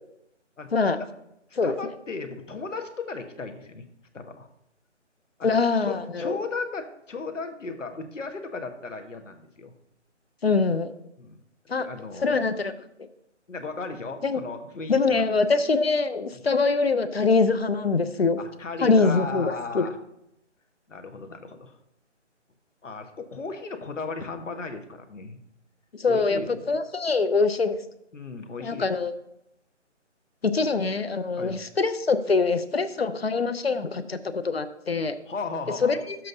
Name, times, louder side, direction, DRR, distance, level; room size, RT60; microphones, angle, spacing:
voice 1, 1.6-3.9 4.1-4.5 5.4-9.7 11.2-11.4 11.8-12.4 13.5-15.2 16.3-16.4 18.4-19.9 20.9-21.8 22.8-25.4 26.1-26.7 28.1-28.9 31.3-31.6 35.3-36.0, left 4 dB, 85° left, 6 dB, 1.3 m, -36 dB
voice 2, 5.4-6.4 10.4-10.9 11.7-11.9 12.2-12.7 14.2-14.4 14.9-18.4 18.8-19.8 25.9-26.4 26.7-27.8 28.6-29.1 30.4-35.2 35.8-36.2, left 4 dB, 55° left, 11 dB, 0.6 m, -23 dB
11.0 x 7.5 x 2.7 m, 0.80 s
hypercardioid pair, 175°, 36 cm